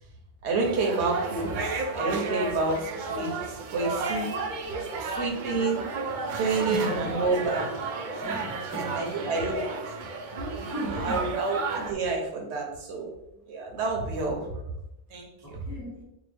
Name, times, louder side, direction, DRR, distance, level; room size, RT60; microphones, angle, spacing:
voice 1, 0.4-1.7 1.9-4.3 5.0-5.8 6.2-7.6 7.9-8.2 8.8-9.8 11.0-13.1 13.5-14.4 15.1-15.6, right 3 dB, 85° right, 0 dB, 1.0 m, -29 dB
sound 1, 0.6-11.9, right 4 dB, 60° right, 0.5 m, -33 dB
voice 2, 6.4-7.2 8.2-9.4 10.6-11.4 13.3-13.4 15.4-16.0, right 1 dB, 15° right, -5 dB, 1.3 m, -36 dB
4.6 x 2.1 x 3.3 m, 0.90 s
omnidirectional pair, 1.1 m